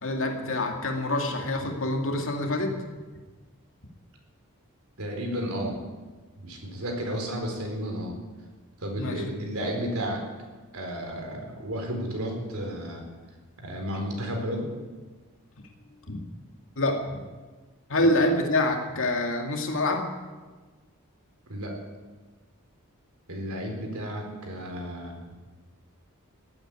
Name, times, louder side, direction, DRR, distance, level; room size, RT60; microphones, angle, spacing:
voice 1, 0.0-2.8 9.0-9.2 16.1-16.3 16.8-17.2 17.9-20.1, left 1 dB, 60° left, 3 dB, 2.3 m, -26 dB
voice 2, 5.0-5.8 6.4-8.1 8.8-10.2 10.7-13.0 13.6-14.7 21.5-21.7 23.3-25.2, equal, 70° right, 2 dB, 4.4 m, -32 dB
16.0 x 9.0 x 9.6 m, 1.3 s
head